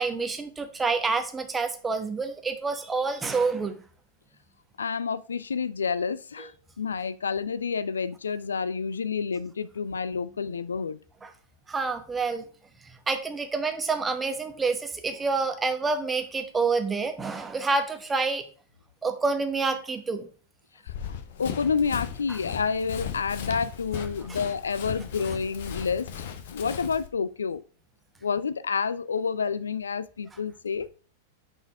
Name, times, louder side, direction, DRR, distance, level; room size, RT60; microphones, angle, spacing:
voice 1, 0.0-3.7 11.2-11.3 11.7-12.5 12.8-18.4 19.0-20.3 22.3-22.4 24.3-24.4, right 4 dB, 15° right, 7 dB, 0.9 m, -28 dB
voice 2, 4.8-6.5 6.8-11.0 21.4-26.1 26.5-27.6 28.2-30.9, left 5 dB, 70° left, 15 dB, 0.3 m, -29 dB
Run, 20.9-27.1, left 8 dB, 55° left, 0.8 m, -37 dB
5.7 x 4.3 x 4.4 m, 0.40 s
figure-of-eight pair, 95°, 0 cm